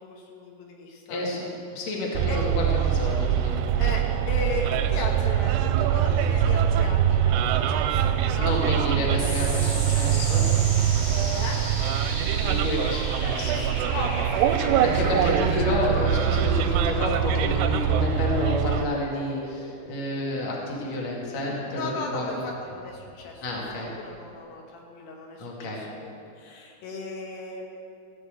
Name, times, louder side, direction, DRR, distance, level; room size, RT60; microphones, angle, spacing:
voice 1, 0.0-1.2 2.3-2.4 3.8-9.8 11.3-11.6 13.5-15.5 21.7-23.6 24.0-27.6, left 3 dB, 80° left, 0 dB, 3.4 m, -36 dB
voice 2, 1.1-2.3 2.6-3.6 8.4-10.5 12.4-13.7 14.8-22.5 23.4-23.9 25.4-25.8, left 1 dB, 45° left, -3 dB, 2.8 m, -30 dB
Bus, 2.1-18.8, right 9 dB, 85° right, 2.7 m, -23 dB
sound 1, 9.2-24.0, equal, 20° left, 0.9 m, -38 dB
15.0 x 6.9 x 8.0 m, 2.5 s
omnidirectional pair, 4.8 m